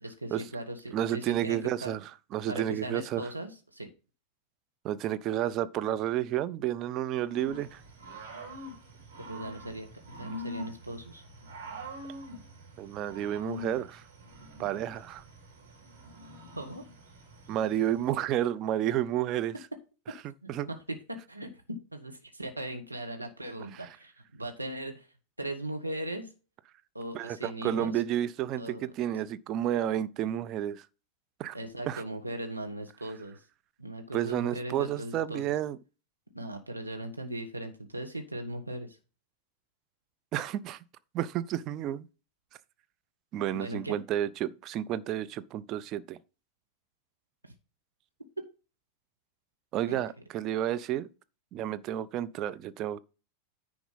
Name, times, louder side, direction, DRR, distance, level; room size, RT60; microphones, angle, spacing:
voice 1, 0.0-2.0 2.5-3.9 9.2-11.2 16.6-16.8 20.4-25.1 25.4-26.3 26.9-28.0 28.5-28.8 31.5-33.4 33.8-35.4 36.3-39.0 43.5-44.0 47.4-47.5 49.9-50.0, right 1 dB, 85° right, 1.4 m, -39 dB
voice 2, 0.9-2.0 2.3-3.2 4.8-7.8 12.8-14.0 14.6-15.2 17.5-19.5 20.5-20.7 27.1-30.9 31.4-31.6 31.9-32.0 34.1-35.8 40.3-40.8 41.1-42.1 43.3-46.2 49.7-51.1 51.5-53.0, right 11 dB, 35° right, 0.6 m, -31 dB
Growling / Cricket, 7.3-18.2, equal, 60° right, 3.8 m, -45 dB
10.0 x 4.9 x 5.4 m
figure-of-eight pair, 90°, 0 cm